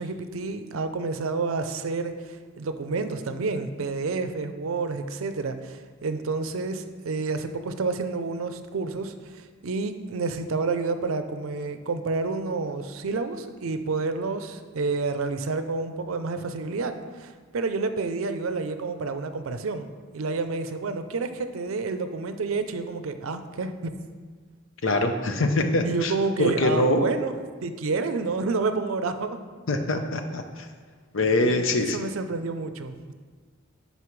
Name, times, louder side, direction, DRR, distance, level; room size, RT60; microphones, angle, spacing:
voice 1, 0.0-19.9 20.1-23.9 25.8-27.3 27.6-29.4 31.4-33.1, right 4 dB, 80° right, 9 dB, 0.5 m, -29 dB
voice 2, 24.8-26.1 26.4-27.0 29.7-30.7 31.1-32.0, left 2 dB, 65° left, 5 dB, 0.7 m, -24 dB
9.2 x 5.4 x 3.2 m, 1.5 s
head